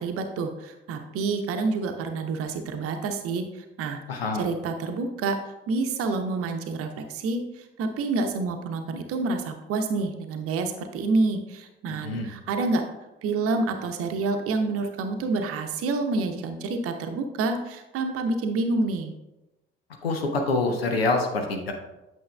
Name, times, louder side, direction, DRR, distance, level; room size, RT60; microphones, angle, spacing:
voice 1, 0.0-4.0 4.3-5.4 5.7-12.8 13.2-19.1, right 3 dB, 50° right, 6 dB, 0.8 m, -28 dB
voice 2, 4.1-4.5 12.0-12.3 20.0-21.7, left 3 dB, 80° left, 3 dB, 0.7 m, -26 dB
8.6 x 6.2 x 2.3 m, 0.99 s
figure-of-eight pair, 45°, 30 cm